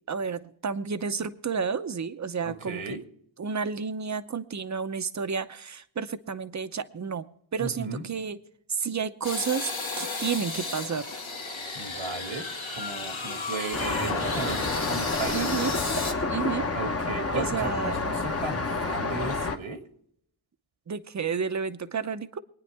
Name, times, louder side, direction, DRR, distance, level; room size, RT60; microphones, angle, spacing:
voice 1, 0.1-3.0 3.4-7.3 7.5-8.4 8.7-9.7 10.0-11.1 15.3-16.0 16.3-16.7 17.3-18.0 20.9-22.4, right 6 dB, 35° right, 12 dB, 0.8 m, -31 dB
voice 2, 2.4-3.0 7.6-8.1 11.7-15.6 16.7-19.8, right 3 dB, 85° right, 5 dB, 2.0 m, -36 dB
sound 1, 9.2-16.1, left 3 dB, 80° left, 2.1 m, -33 dB
Traffic noise roadway noise, 13.7-19.6, left 3 dB, 30° left, 1.1 m, -29 dB
24.0 x 9.9 x 3.4 m, 0.68 s
wide cardioid pair, 125°, 46 cm